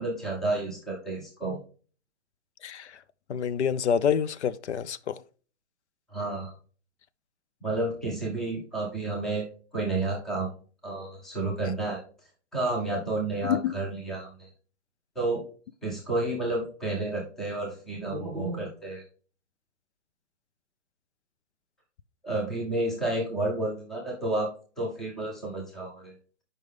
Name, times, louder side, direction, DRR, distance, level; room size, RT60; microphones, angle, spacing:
voice 1, 0.0-1.6 6.1-6.5 7.6-9.5 9.7-10.5 10.8-12.0 12.5-14.5 15.2-15.4 15.8-19.0 22.2-26.1, right 2 dB, ahead, 0.5 m, -30 dB
voice 2, 2.6-3.0 3.3-5.2 11.7-11.8 13.4-13.8, left 8 dB, 75° left, 0.6 m, -27 dB
8.1 x 5.3 x 3.6 m
hypercardioid pair, 160°, 35 cm